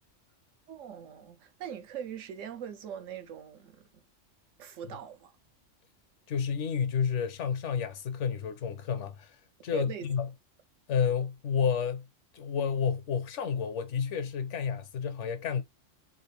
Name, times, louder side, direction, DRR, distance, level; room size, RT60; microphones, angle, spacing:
voice 1, 0.7-4.0 4.6-5.3 9.7-10.1, right 9 dB, 85° right, 1.1 m, -41 dB
voice 2, 6.3-9.4 9.6-10.3 10.9-12.1 12.3-15.6, left 7 dB, 75° left, 0.9 m, -30 dB
3.7 x 2.4 x 3.1 m
omnidirectional pair, 1.3 m